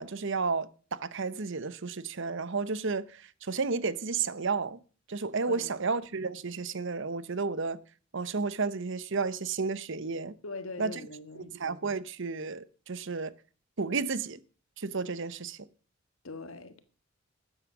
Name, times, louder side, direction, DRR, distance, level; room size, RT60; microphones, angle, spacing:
voice 1, 0.0-4.8 5.1-7.8 8.1-10.4 10.8-11.0 11.6-13.3 13.8-14.4 14.8-15.6, right 4 dB, 65° right, 0.9 m, -32 dB
voice 2, 10.4-11.5 16.2-16.8, left 3 dB, 80° left, 1.6 m, -41 dB
13.5 x 9.1 x 6.0 m
head